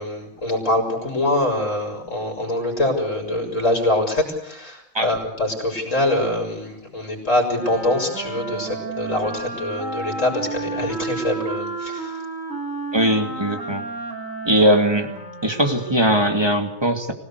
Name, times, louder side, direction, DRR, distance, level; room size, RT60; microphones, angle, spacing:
voice 1, 0.0-12.1, left 1 dB, 35° left, 3 dB, 6.1 m, -24 dB
Wind instrument woodwind instrument, 7.5-16.2, right 3 dB, 35° right, 4.9 m, -31 dB
voice 2, 12.9-13.8 14.4-15.1 15.4-17.1, equal, 10° right, 5 dB, 2.4 m, -19 dB
25.5 x 18.0 x 8.3 m, 0.71 s
omnidirectional pair, 2.2 m